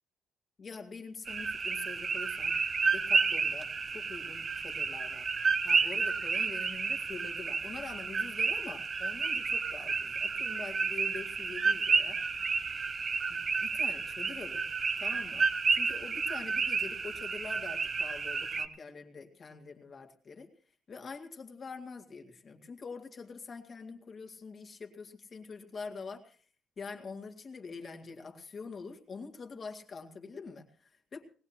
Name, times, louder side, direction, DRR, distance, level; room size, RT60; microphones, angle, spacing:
voice 1, 0.6-5.3 5.6-12.2 13.3-14.6 15.0-20.5 20.9-26.4 26.8-31.2, left 4 dB, 40° left, 3 dB, 2.0 m, -45 dB
sound 1, 1.3-18.7, right 4 dB, 35° right, 0.8 m, -31 dB
20.5 x 18.0 x 2.9 m, 0.40 s
cardioid pair, 115°, 0 cm